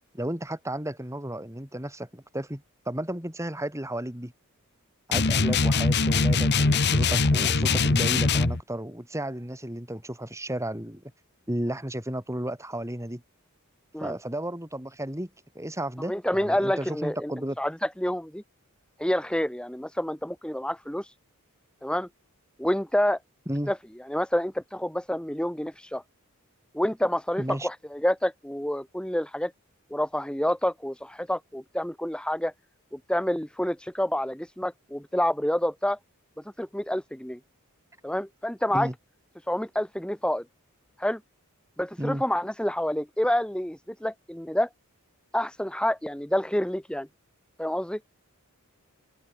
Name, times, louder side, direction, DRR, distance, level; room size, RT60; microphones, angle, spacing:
voice 1, 0.1-4.3 5.1-11.0 11.5-13.2 14.0-15.3 15.5-17.6 23.5-23.7 27.4-27.7 38.7-38.9 42.0-42.2, right 1 dB, 15° right, 5.9 m, -33 dB
sound 1, 5.1-8.6, left 3 dB, 50° left, 1.2 m, -22 dB
voice 2, 16.1-17.3 17.6-18.4 19.0-21.1 21.8-22.1 22.6-23.2 23.7-23.8 24.1-26.0 26.7-29.5 29.9-32.5 32.9-36.0 36.6-37.4 38.0-38.9 39.5-40.4 41.0-41.2 41.8-44.7 45.3-47.1 47.6-48.0, left 1 dB, 5° left, 1.5 m, -28 dB
head